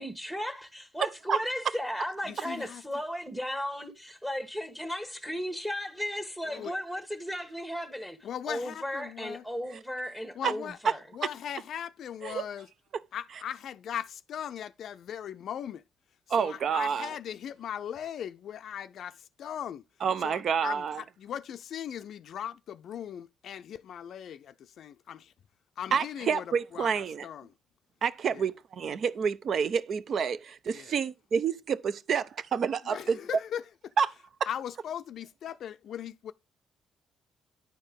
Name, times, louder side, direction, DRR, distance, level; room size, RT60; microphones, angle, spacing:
voice 1, 0.0-8.2 8.5-11.0, equal, 10° right, 1.3 m, -35 dB
voice 2, 2.2-2.8 6.4-6.7 8.2-9.5 10.3-10.8 11.1-12.7 13.1-15.8 16.4-19.8 20.2-25.3 25.8-27.5 28.3-28.5 30.7-30.9 32.8-33.6 34.5-36.3, left 9 dB, 70° left, 0.4 m, -39 dB
voice 3, 16.3-17.1 20.0-21.0 25.9-27.3 28.0-33.2 34.0-34.1, right 6 dB, 60° right, 0.6 m, -28 dB
10.5 x 4.5 x 5.1 m
cardioid pair, 90°, 0 cm